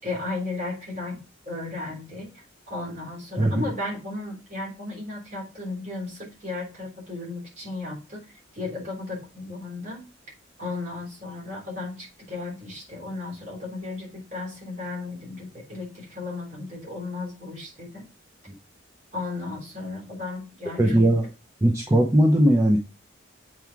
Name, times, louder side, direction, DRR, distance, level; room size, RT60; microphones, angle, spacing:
voice 1, 0.0-1.2 1.4-8.2 8.5-10.0 10.6-18.0 19.1-20.8, left 2 dB, 35° right, -2 dB, 3.5 m, -35 dB
voice 2, 3.4-3.7 20.8-21.3 21.6-22.8, right 1 dB, 15° right, 0 dB, 0.8 m, -19 dB
7.7 x 4.7 x 3.5 m, 0.29 s
head